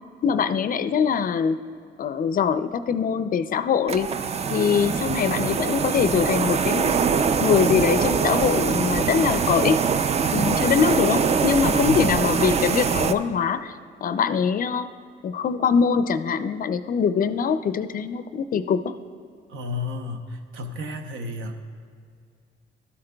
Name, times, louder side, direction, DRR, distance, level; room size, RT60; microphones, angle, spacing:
voice 1, 0.2-1.6 2.0-4.1 4.5-7.0 7.4-9.8 10.3-13.7 14.0-14.9 15.2-18.9, left 6 dB, 45° left, 12 dB, 0.4 m, -23 dB
sound 1, 3.9-13.1, right 6 dB, 35° right, 0.3 m, -23 dB
voice 2, 11.6-12.1 19.5-21.6, left 2 dB, 85° right, 6 dB, 0.8 m, -32 dB
12.5 x 8.7 x 2.3 m, 2.3 s
cardioid pair, 90°, 20 cm